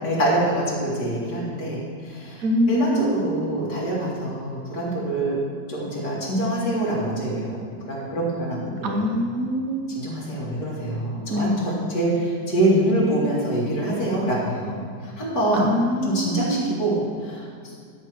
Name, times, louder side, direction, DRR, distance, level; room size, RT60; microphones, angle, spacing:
voice 1, 0.0-5.4 5.7-7.5 7.8-9.2 9.9-15.7 16.0-17.7, right 1 dB, 70° left, -6 dB, 3.1 m, -25 dB
voice 2, 2.4-3.4 8.8-10.0 11.3-11.8 15.5-16.7, equal, 60° right, 5 dB, 1.2 m, -24 dB
12.0 x 4.8 x 6.3 m, 2.1 s
omnidirectional pair, 1.8 m